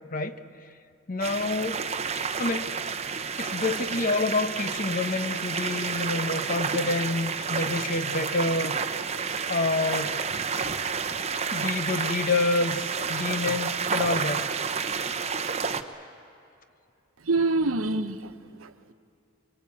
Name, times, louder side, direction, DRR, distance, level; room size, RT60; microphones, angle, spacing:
voice 1, 1.1-1.8 2.4-2.7 3.4-8.7 9.5-10.2 10.6-10.7 11.5-14.5, left 3 dB, 40° left, 9 dB, 1.1 m, -28 dB
sound 1, 1.2-15.8, right 5 dB, 30° right, 1.0 m, -30 dB
voice 2, 17.2-18.3 18.6-18.9, right 3 dB, 85° right, 9 dB, 1.1 m, -26 dB
24.0 x 24.0 x 8.6 m, 2.6 s
head